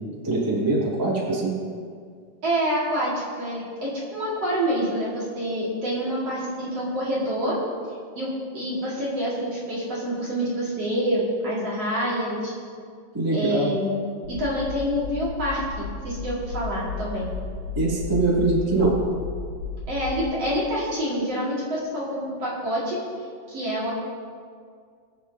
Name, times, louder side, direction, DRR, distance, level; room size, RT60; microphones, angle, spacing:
voice 1, 0.2-1.6 13.1-13.7 17.8-18.9, right 2 dB, 5° right, -7 dB, 1.9 m, -23 dB
voice 2, 2.4-7.6 8.2-12.5 13.3-14.0 14.3-17.3 19.9-23.0 23.5-23.9, equal, 45° right, -7 dB, 2.8 m, -27 dB
sound 1, 14.2-20.3, left 4 dB, 80° right, 4.6 m, -34 dB
23.5 x 8.5 x 2.8 m, 2.1 s
omnidirectional pair, 4.6 m